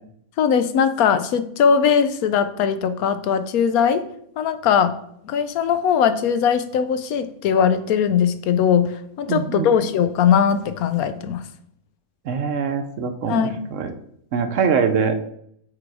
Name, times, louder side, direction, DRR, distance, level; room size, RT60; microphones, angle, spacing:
voice 1, 0.4-4.1 4.4-5.0 5.2-11.4 13.3-13.6, left 7 dB, 80° left, 12 dB, 1.1 m, -20 dB
voice 2, 9.3-9.7 12.2-13.9 14.3-15.2, right 6 dB, 65° right, 8 dB, 0.9 m, -23 dB
6.5 x 3.9 x 4.7 m, 0.69 s
omnidirectional pair, 1.5 m